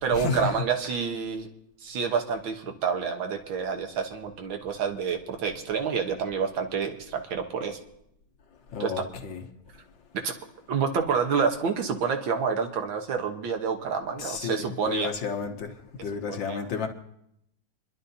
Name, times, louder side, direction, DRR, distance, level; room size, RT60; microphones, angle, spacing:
voice 1, 0.0-1.5 1.8-7.8 8.8-9.0 10.2-10.3 10.7-15.1 16.0-16.7, right 6 dB, 75° right, 1.9 m, -28 dB
voice 2, 8.7-9.4 14.2-15.7 16.0-16.9, left 6 dB, 70° left, 1.8 m, -32 dB
28.0 x 11.5 x 2.7 m
omnidirectional pair, 2.2 m